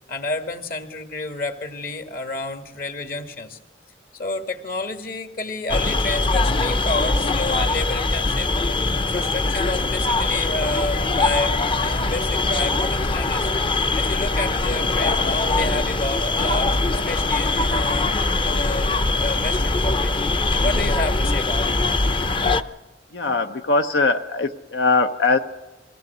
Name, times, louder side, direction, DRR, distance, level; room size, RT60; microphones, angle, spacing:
voice 1, 0.1-3.6 4.1-8.5 9.0-13.5 13.9-16.8 17.1-20.2 20.6-21.8, left 2 dB, 55° left, 7 dB, 1.8 m, -30 dB
sound 1, 5.7-22.6, left 2 dB, 30° left, 0.6 m, -22 dB
voice 2, 23.1-25.4, left 3 dB, 85° left, 6 dB, 0.8 m, -21 dB
22.0 x 16.5 x 8.0 m, 1.1 s
head